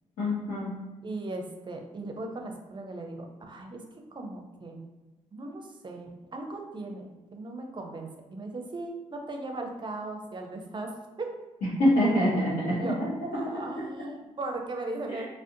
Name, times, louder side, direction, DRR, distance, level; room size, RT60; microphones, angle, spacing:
voice 1, 0.2-0.8 11.8-12.9 13.4-13.6, left 1 dB, 75° left, -11 dB, 0.9 m, -25 dB
voice 2, 1.0-3.8 4.1-4.8 5.3-10.9 11.2-11.3 12.7-13.0 13.3-15.3, right 2 dB, 35° right, 3 dB, 0.5 m, -38 dB
2.4 x 2.0 x 2.7 m, 1.2 s
hypercardioid pair, 45°, 15 cm